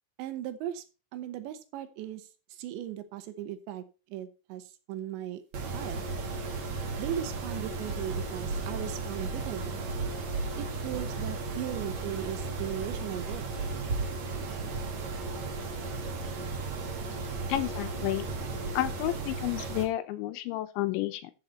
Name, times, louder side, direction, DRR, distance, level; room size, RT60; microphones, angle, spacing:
voice 1, 0.2-0.8 1.1-5.4 5.7-6.0 7.0-9.8 10.6-13.4, right 11 dB, 75° right, 11 dB, 3.0 m, -38 dB
Mechanisms, 5.5-19.8, right 3 dB, 45° right, 2.6 m, -35 dB
voice 2, 17.5-18.3 18.7-21.3, left 15 dB, 80° left, 10 dB, 3.0 m, -31 dB
13.0 x 6.5 x 4.2 m, 0.32 s
omnidirectional pair, 5.5 m